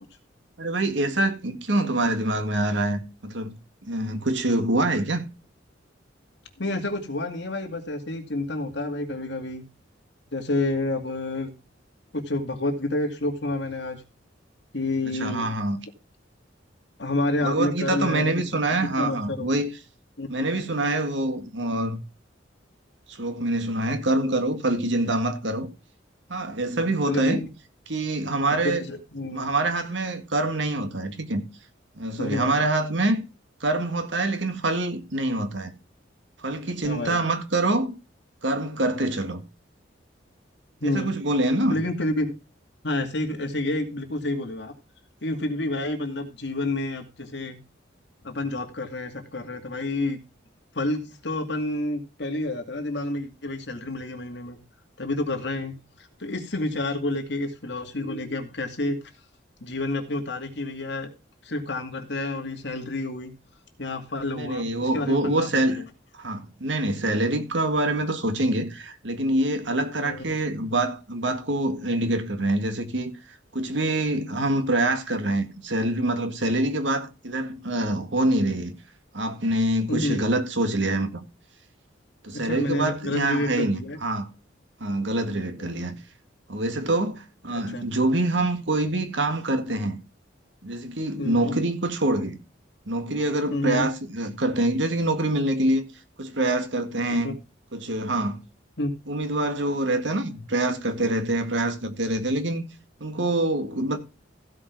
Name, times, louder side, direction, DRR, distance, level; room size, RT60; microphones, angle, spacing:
voice 1, 0.6-3.6 3.8-5.2 15.0-15.8 17.4-19.7 20.3-22.0 23.1-25.7 26.3-27.4 27.9-28.8 29.3-31.4 32.0-33.3 33.6-35.7 36.4-37.9 38.4-39.4 40.8-41.8 64.3-65.8 66.1-78.8 79.1-81.2 82.2-84.3 84.8-86.0 86.5-90.0 90.6-92.4 92.9-95.9 96.2-97.4 97.7-98.4 99.1-102.6 103.0-104.0, right 1 dB, 70° right, 1.9 m, -25 dB
voice 2, 6.6-9.6 10.3-11.5 12.1-14.0 14.7-15.5 17.0-19.5 20.2-20.6 26.8-27.5 28.5-29.5 32.2-32.6 36.8-37.2 40.8-41.1 41.7-42.3 42.8-44.7 45.2-47.6 48.2-50.2 50.7-54.6 55.0-55.7 56.2-59.0 59.6-61.1 61.4-63.3 63.8-65.9 70.0-70.2 79.9-80.3 82.3-84.0 85.6-85.8 87.5-87.8 91.2-91.5 93.5-93.9 97.2-97.3 98.8-99.0, left 2 dB, 65° left, 2.4 m, -29 dB
15.5 x 5.5 x 4.6 m
head